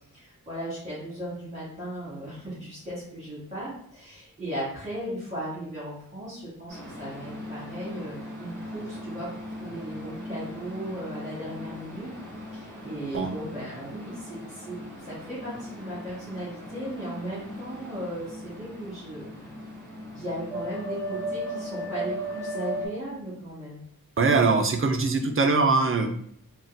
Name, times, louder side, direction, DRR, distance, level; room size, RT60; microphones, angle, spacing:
voice 1, 0.1-9.3 9.6-12.1 12.5-19.5 20.1-23.8, right 1 dB, 20° right, -10 dB, 1.3 m, -37 dB
sound 1, 6.7-22.9, equal, 10° left, 1.5 m, -38 dB
voice 2, 24.2-26.1, right 4 dB, 40° right, 5 dB, 0.4 m, -22 dB
3.8 x 2.2 x 2.6 m, 0.66 s
wide cardioid pair, 70°, 36 cm